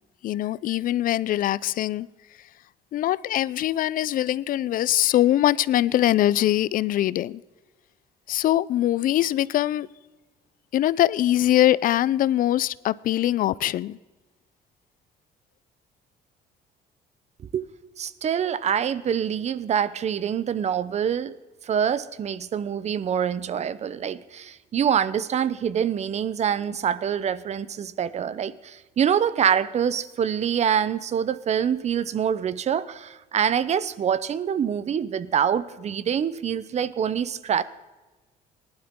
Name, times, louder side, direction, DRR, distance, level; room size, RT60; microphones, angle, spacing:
voice 1, 0.2-2.1 2.9-7.4 8.3-9.9 10.7-14.0, left 13 dB, 55° left, 0.4 m, -22 dB
voice 2, 18.0-21.3 21.6-37.6, right 8 dB, 40° right, 0.7 m, -25 dB
19.0 x 11.5 x 3.6 m
cardioid pair, 110°, 17 cm